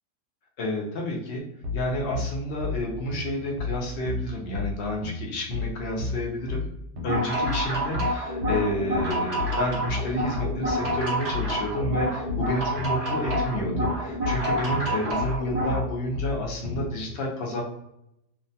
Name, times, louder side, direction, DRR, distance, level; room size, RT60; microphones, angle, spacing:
voice 1, 0.6-1.4 1.7-6.6 7.0-17.6, left 1 dB, 85° left, -2 dB, 0.5 m, -30 dB
sound 1, 1.6-16.9, left 3 dB, 80° right, 1.2 m, -32 dB
sound 2, 7.0-15.8, equal, 55° right, 0.4 m, -28 dB
2.8 x 2.2 x 2.6 m, 0.81 s
omnidirectional pair, 1.8 m